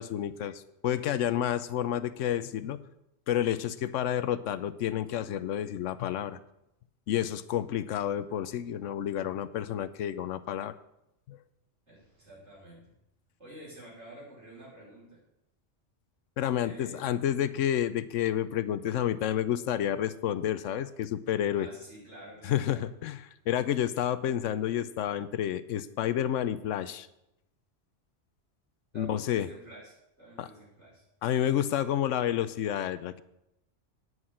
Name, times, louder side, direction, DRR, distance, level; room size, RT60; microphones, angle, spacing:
voice 1, 0.0-2.8 3.3-6.4 7.1-10.7 11.3-11.4 16.4-21.7 22.4-27.1 29.0-29.5 30.4-30.5 31.2-33.2, left 10 dB, 80° left, 14 dB, 0.9 m, -30 dB
voice 2, 11.9-12.9 13.4-15.2 16.5-17.1 21.6-22.8 28.9-31.0, right 1 dB, 60° right, -6 dB, 5.7 m, -49 dB
9.6 x 6.3 x 7.4 m, 0.86 s
omnidirectional pair, 1.3 m